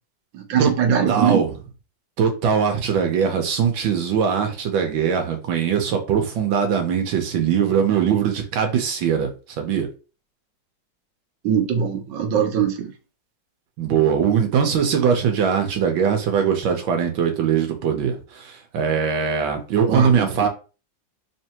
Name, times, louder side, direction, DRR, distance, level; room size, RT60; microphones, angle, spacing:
voice 1, 0.3-1.5 11.4-12.9 19.9-20.5, right 7 dB, 75° right, 1.5 m, -21 dB
voice 2, 1.1-1.5 2.2-9.3 9.6-9.9 13.8-20.5, right 7 dB, 90° right, 1.6 m, -21 dB
3.7 x 3.3 x 2.9 m
omnidirectional pair, 2.0 m